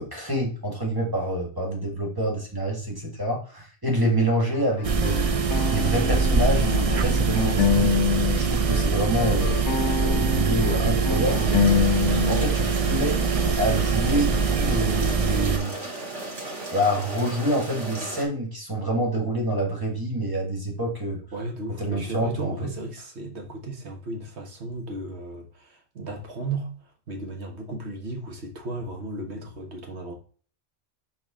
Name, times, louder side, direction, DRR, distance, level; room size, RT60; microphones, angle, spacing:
voice 1, 0.0-9.6 10.0-13.2 13.5-15.7 16.7-21.2 21.8-22.7, right 1 dB, 20° right, 1.7 m, -27 dB
sound 1, 4.5-8.4 8.7-12.5, left 6 dB, 80° left, 1.0 m, -26 dB
sound 2, 4.8-15.6, right 5 dB, 45° right, 0.4 m, -23 dB
sound 3, 11.2-18.3, right 2 dB, 85° right, 2.2 m, -35 dB
voice 2, 21.3-30.1, right 2 dB, 70° right, 1.6 m, -35 dB
6.1 x 4.7 x 3.7 m
omnidirectional pair, 1.2 m